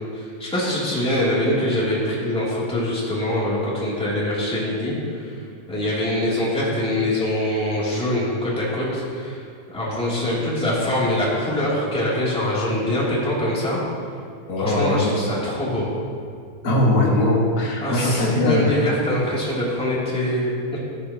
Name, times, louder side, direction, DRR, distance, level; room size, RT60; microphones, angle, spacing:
voice 1, 0.1-5.3 5.7-9.4 9.7-13.8 14.6-15.9 17.8-20.8, left 1 dB, ahead, -8 dB, 1.8 m, -24 dB
voice 2, 14.5-15.2 16.6-18.8, left 1 dB, 35° left, -5 dB, 1.5 m, -20 dB
15.0 x 11.0 x 3.0 m, 2.2 s
omnidirectional pair, 4.7 m